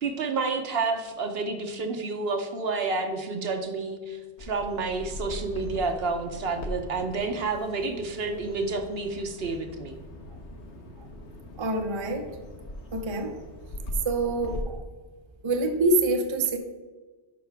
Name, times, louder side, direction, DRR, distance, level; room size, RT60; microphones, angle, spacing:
voice 1, 0.0-10.0, right 3 dB, 60° right, 5 dB, 1.0 m, -30 dB
Bird vocalization bird call bird song, 4.4-14.6, left 1 dB, 75° left, 1.3 m, -40 dB
voice 2, 11.6-12.3 12.9-13.4 14.0-14.8 15.4-16.6, right 2 dB, 30° right, 5 dB, 0.6 m, -26 dB
10.5 x 5.7 x 3.4 m, 1.3 s
omnidirectional pair, 1.2 m